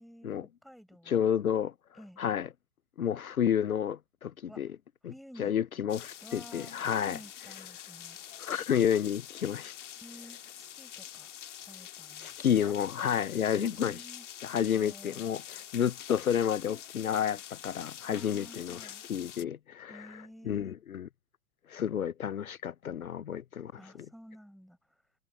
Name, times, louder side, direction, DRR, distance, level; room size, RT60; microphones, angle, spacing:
voice 1, 0.0-0.4 0.6-1.2 2.0-2.2 4.5-4.6 5.0-5.5 6.2-8.2 10.0-12.8 13.6-15.3 18.1-19.0 19.9-20.8 23.8-25.0, equal, ahead, 5.8 m, -52 dB
voice 2, 1.1-1.7 2.2-2.5 3.0-4.7 5.0-5.1 5.4-7.2 8.4-9.7 12.2-14.0 14.4-21.1 21.7-24.1, left 9 dB, 70° left, 0.7 m, -30 dB
sound 1, 5.9-19.4, left 11 dB, 55° left, 2.3 m, -46 dB
figure-of-eight pair, 105°, 44 cm